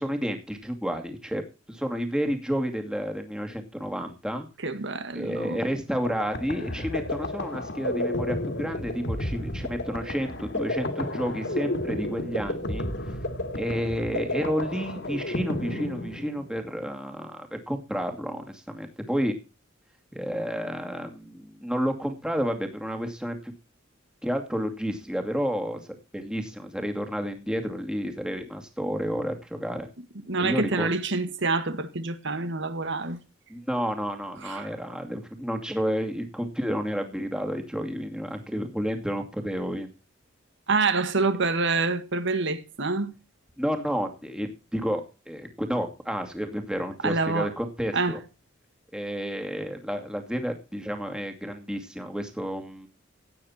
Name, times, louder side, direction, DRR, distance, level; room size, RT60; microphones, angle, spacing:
voice 1, 0.0-4.5 5.1-12.9 13.5-19.3 20.1-23.5 24.2-25.8 26.1-29.9 30.4-30.9 33.5-39.9 43.6-48.2 48.9-52.9, equal, 5° right, 2.5 m, -31 dB
voice 2, 4.6-5.6 30.3-33.2 34.4-34.7 40.7-43.1 47.0-47.5 47.9-48.2, right 3 dB, 65° right, 1.8 m, -26 dB
sound 1, 5.8-16.6, left 1 dB, 60° left, 2.4 m, -32 dB
17.0 x 9.4 x 4.4 m
head